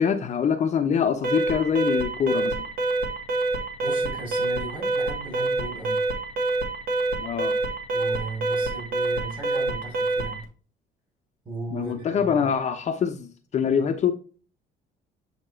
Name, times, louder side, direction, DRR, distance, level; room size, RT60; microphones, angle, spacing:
voice 1, 0.0-2.7 7.2-7.6 11.7-14.1, left 7 dB, 45° left, 0.7 m, -24 dB
Alarm, 1.2-10.4, right 2 dB, 70° right, 1.6 m, -26 dB
voice 2, 3.8-6.0 7.9-10.4 11.4-12.5, right 2 dB, 25° right, 3.4 m, -36 dB
7.6 x 2.9 x 4.3 m
cardioid pair, 110°, 17 cm